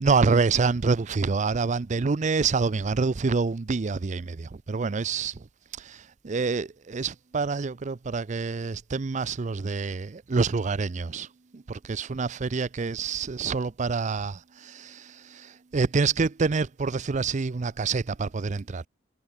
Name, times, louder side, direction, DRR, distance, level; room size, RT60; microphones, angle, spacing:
voice 1, 0.0-5.5 5.8-11.3 11.5-18.9, right 4 dB, 40° right, 0.5 m, -27 dB
head